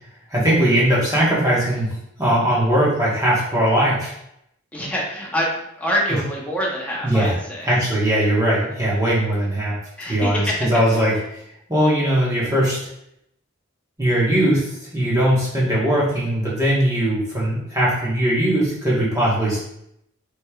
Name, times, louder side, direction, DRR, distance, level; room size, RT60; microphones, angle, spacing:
voice 1, 0.3-1.9 2.2-4.1 7.0-7.4 7.6-9.8 10.1-11.4 11.7-12.8 14.0-19.6, right 1 dB, 15° right, -7 dB, 1.4 m, -20 dB
voice 2, 4.7-7.7 10.0-10.7, equal, 5° left, -4 dB, 0.9 m, -25 dB
5.0 x 3.3 x 2.4 m, 0.78 s
head